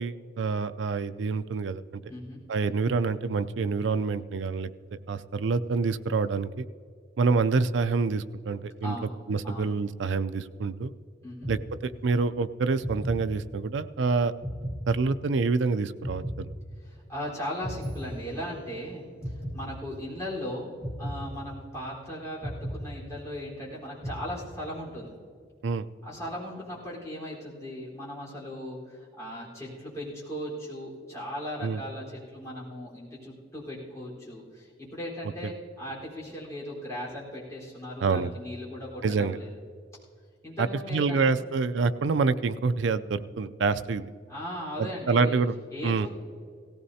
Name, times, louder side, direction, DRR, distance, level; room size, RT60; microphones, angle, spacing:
voice 1, 0.0-1.8 2.5-4.7 5.1-6.7 7.2-9.0 9.3-10.9 11.5-14.3 14.9-16.2 25.6-25.8 31.6-31.8 38.0-38.3 39.0-39.4 40.6-44.1 44.8-45.5 45.8-46.1, right 4 dB, 80° right, 11 dB, 0.4 m, -27 dB
voice 2, 2.1-2.4 8.8-9.1 9.4-9.7 11.2-11.5 16.8-25.2 26.0-39.6 40.4-41.5 44.3-45.4 45.7-46.1, equal, 15° left, -7 dB, 4.2 m, -38 dB
sound 1, 11.4-12.3 12.8-13.9 14.4-15.6 16.0-17.2 17.6-18.8 19.2-20.3 20.8-22.0 22.4-23.6 24.0-24.9, equal, 55° right, 2.6 m, -37 dB
17.5 x 16.0 x 2.8 m, 2.2 s
head